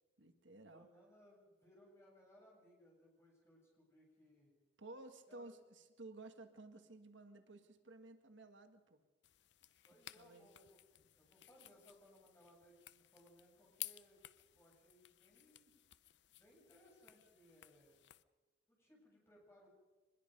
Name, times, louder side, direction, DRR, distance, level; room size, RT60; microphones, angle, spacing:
voice 1, 0.2-0.9 4.8-9.0 10.2-10.5, right 2 dB, 85° right, 7 dB, 1.7 m, -55 dB
voice 2, 0.7-4.5 5.3-5.5 9.8-14.2 14.5-15.7 16.3-18.1 18.7-19.7, equal, 15° left, -3 dB, 8.0 m, -66 dB
sound 1, 9.2-18.2, left 15 dB, 70° left, 0.6 m, -56 dB
24.5 x 21.0 x 5.4 m, 1.2 s
head